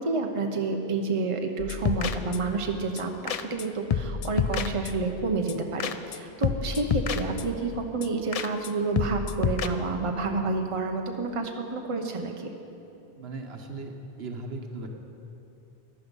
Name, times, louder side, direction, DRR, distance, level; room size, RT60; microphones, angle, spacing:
voice 1, 0.0-12.5, right 3 dB, 35° right, 3 dB, 0.9 m, -29 dB
sound 1, 1.6-2.6 3.0-3.1 3.3-3.6 3.9-5.1 5.5-6.2 6.4-7.7 8.0-8.1 8.3-8.7 9.0-9.7, left 7 dB, 50° left, 0.5 m, -29 dB
voice 2, 13.2-13.9 14.2-14.9, right 3 dB, 80° right, 3 dB, 1.4 m, -37 dB
14.5 x 11.0 x 5.4 m, 2.8 s
omnidirectional pair, 1.0 m